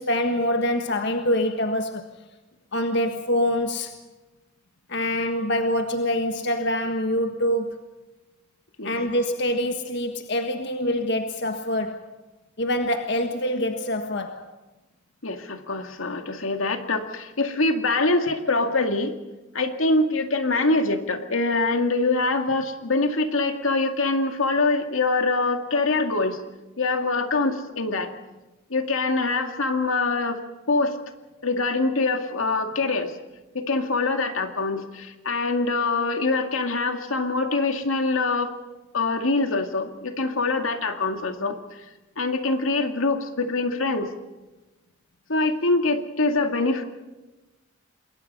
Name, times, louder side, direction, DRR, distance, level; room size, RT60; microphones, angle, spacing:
voice 1, 0.0-2.1 2.7-3.9 4.9-7.8 8.8-12.1 12.6-14.5, left 1 dB, 60° left, 1.5 m, -25 dB
voice 2, 15.2-19.2 19.5-26.4 26.8-28.1 28.7-30.4 30.7-31.0 31.4-33.1 33.5-38.5 38.9-41.6 42.2-44.1 45.3-46.8, left 3 dB, 85° left, 2.2 m, -24 dB
28.0 x 22.0 x 5.5 m
head